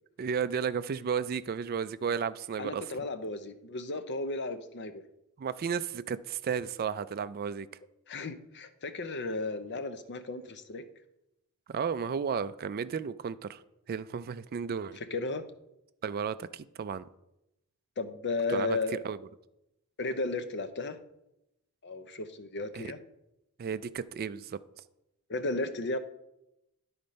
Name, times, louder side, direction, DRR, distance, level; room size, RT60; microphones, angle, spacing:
voice 1, 0.2-2.9 5.4-7.7 11.7-13.6 13.9-15.0 16.0-17.0 18.5-18.8 19.0-19.2 22.7-22.8 23.6-24.6, right 6 dB, 45° right, 0.3 m, -33 dB
voice 2, 2.6-5.0 8.1-10.8 15.1-15.4 18.0-19.0 20.0-21.0 21.8-23.0 25.3-26.0, left 3 dB, 50° left, 0.7 m, -34 dB
11.5 x 4.3 x 5.2 m
head